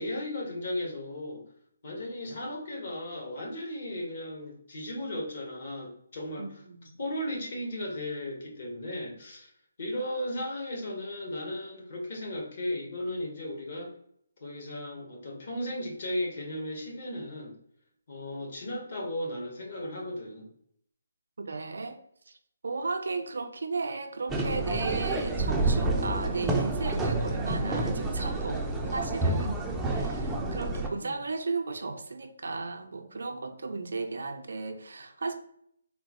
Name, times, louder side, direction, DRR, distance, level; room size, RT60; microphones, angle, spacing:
voice 1, 0.0-1.4 1.8-6.5 7.0-9.5 9.8-13.9 14.4-17.5 18.1-20.5 30.7-31.2, left 1 dB, 55° left, 1.1 m, -36 dB
voice 2, 6.4-6.9 21.4-22.0 22.3-22.4 22.6-35.3, right 3 dB, 75° right, 0.4 m, -35 dB
sound 1, 24.3-30.9, right 2 dB, 10° right, 0.3 m, -29 dB
3.7 x 2.0 x 2.9 m
hypercardioid pair, 155°, 0 cm